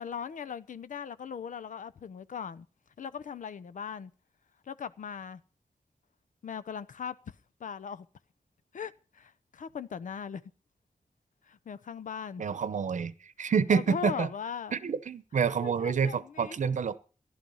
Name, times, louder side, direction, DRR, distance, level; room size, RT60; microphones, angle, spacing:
voice 1, 0.0-2.7 3.0-4.1 4.7-5.4 6.4-7.3 7.6-8.1 8.7-10.4 11.5-12.5 13.4-14.7 15.6-16.6, left 7 dB, 85° left, 0.7 m, -39 dB
voice 2, 12.4-14.3 14.7-17.0, right 6 dB, 70° right, 0.8 m, -28 dB
15.0 x 11.5 x 5.5 m
wide cardioid pair, 165°, 13 cm